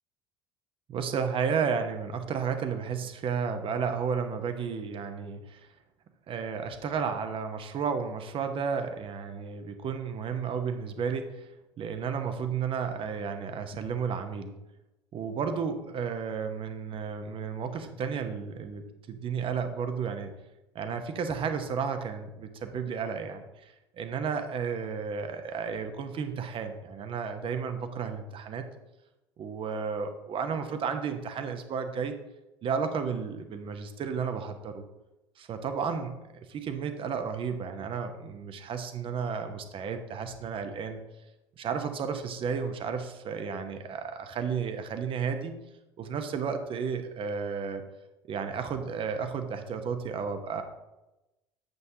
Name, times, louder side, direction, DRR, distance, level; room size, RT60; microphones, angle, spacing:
voice 1, 0.9-5.7 6.3-11.5 11.8-14.5 15.1-20.3 20.7-28.6 29.4-32.2 32.6-34.8 35.4-36.1 36.5-41.0 41.6-45.6 46.0-47.8 48.3-50.6, right 6 dB, 40° right, 7 dB, 0.9 m, -32 dB
7.9 x 7.8 x 2.8 m, 0.98 s
figure-of-eight pair, 60°, 14 cm